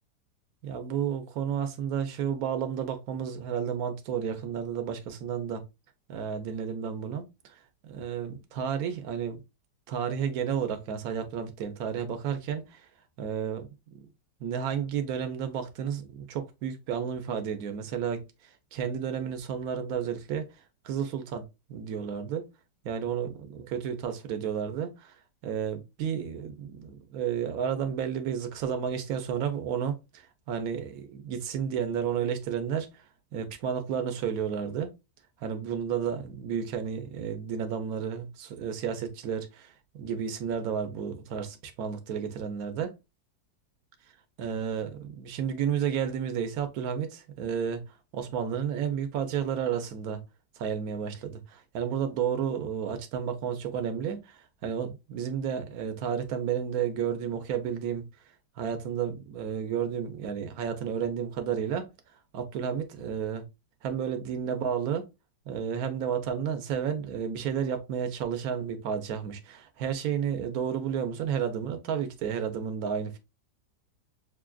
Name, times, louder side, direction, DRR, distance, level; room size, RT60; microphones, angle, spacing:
voice 1, 0.6-5.6 6.1-7.3 7.8-9.4 9.9-12.8 13.2-13.7 14.4-18.2 18.7-20.4 20.8-21.4 21.7-22.4 22.8-25.1 25.4-32.9 33.3-34.9 35.4-39.7 40.0-42.9 44.4-47.8 48.1-50.2 50.6-58.1 58.6-61.9 62.3-63.4 63.8-65.1 65.5-73.2, right 8 dB, 65° right, 1.1 m, -31 dB
6.0 x 2.4 x 2.3 m
omnidirectional pair, 1.9 m